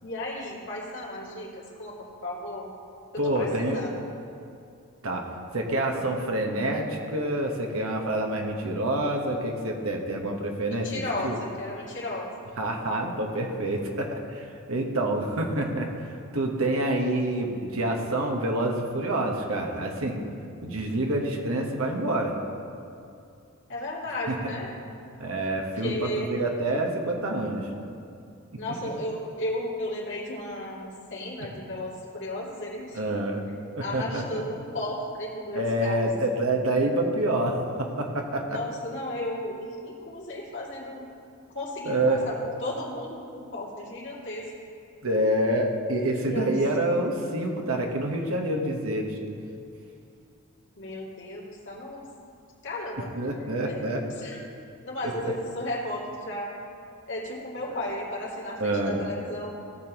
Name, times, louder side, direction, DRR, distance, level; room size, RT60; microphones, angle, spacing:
voice 1, 0.0-2.7 3.1-4.0 10.7-12.3 23.7-24.7 25.8-26.3 28.6-33.0 33.8-36.2 38.4-41.1 41.5-44.5 46.1-46.5 50.8-52.0 52.6-53.1 53.7-53.9 54.2-54.4 54.8-56.5 57.1-59.5, left 1 dB, 60° left, -5 dB, 2.5 m, -34 dB
voice 2, 3.2-3.8 5.0-5.2 5.5-11.4 12.6-20.2 20.6-22.3 24.3-24.5 25.2-27.7 28.5-28.6 32.9-33.4 33.8-34.4 35.5-38.6 41.8-42.2 45.0-49.2 53.1-54.0 55.0-55.3 57.7-57.8 58.6-59.0, right 1 dB, 75° right, 1 dB, 1.2 m, -27 dB
17.5 x 6.9 x 3.0 m, 2.5 s
head